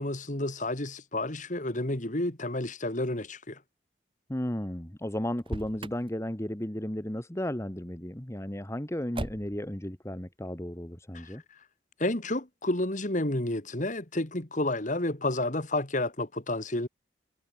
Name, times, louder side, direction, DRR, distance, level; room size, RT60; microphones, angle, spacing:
voice 1, 0.0-3.6 11.1-11.3 12.0-16.9, left 1 dB, 45° left, 2.7 m, -30 dB
voice 2, 4.3-11.4, left 1 dB, 15° left, 1.5 m, -34 dB
Motor vehicle (road), 5.3-6.1 9.1-9.7, right 1 dB, 30° right, 4.3 m, -37 dB
head